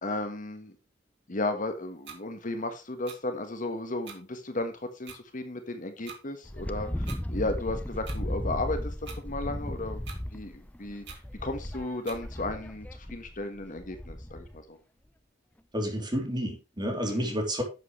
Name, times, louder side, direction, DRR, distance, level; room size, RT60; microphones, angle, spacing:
voice 1, 0.0-0.7 1.3-10.0 10.3-11.0 11.4-14.8 17.1-17.4, left 2 dB, 45° left, 1.4 m, -34 dB
sound 1, 2.0-2.2 3.0-3.2 4.0-4.2 5.0-5.2 6.0-6.2 7.0-7.2 8.0-8.2 9.0-9.2 10.0-10.2 11.0-11.2 12.0-12.2, right 6 dB, 65° right, 2.6 m, -44 dB
Wind, 6.4-14.6, equal, 10° left, 0.6 m, -36 dB
voice 2, 15.7-17.6, equal, 25° right, 3.3 m, -30 dB
11.0 x 7.8 x 3.2 m
head